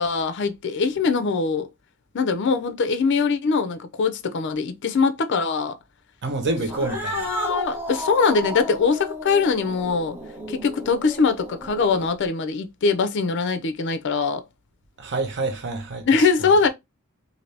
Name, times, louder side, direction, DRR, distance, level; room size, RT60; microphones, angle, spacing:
voice 1, 0.0-1.7 2.1-5.7 7.1-10.2 10.5-14.4 16.1-16.7, left 4 dB, 55° left, 0.4 m, -22 dB
voice 2, 6.2-7.3 15.0-16.1, right 2 dB, 55° right, 0.7 m, -27 dB
Cat, 6.6-12.3, equal, 10° right, 0.7 m, -34 dB
2.7 x 2.6 x 3.2 m
head